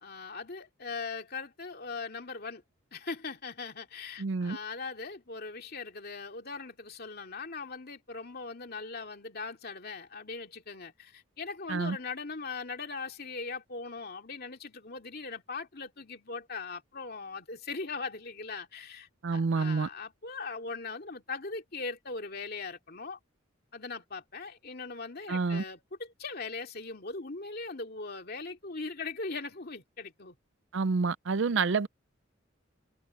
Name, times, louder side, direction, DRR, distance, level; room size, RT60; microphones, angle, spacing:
voice 1, 0.0-2.6 2.9-23.2 23.7-30.3, left 4 dB, 50° left, 2.5 m, -40 dB
voice 2, 4.2-4.6 11.7-12.0 19.2-19.9 25.3-25.6 30.7-31.9, right 4 dB, 65° right, 0.5 m, -28 dB
head